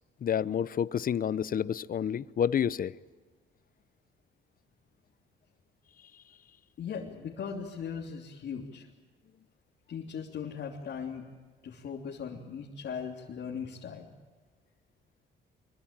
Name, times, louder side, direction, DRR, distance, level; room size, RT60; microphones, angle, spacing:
voice 1, 0.2-3.0, left 8 dB, 45° left, 0.7 m, -29 dB
voice 2, 6.8-8.8 9.9-11.3 11.6-14.1, left 6 dB, 60° left, 3.3 m, -38 dB
25.0 x 23.5 x 8.9 m
cardioid pair, 90°, 20 cm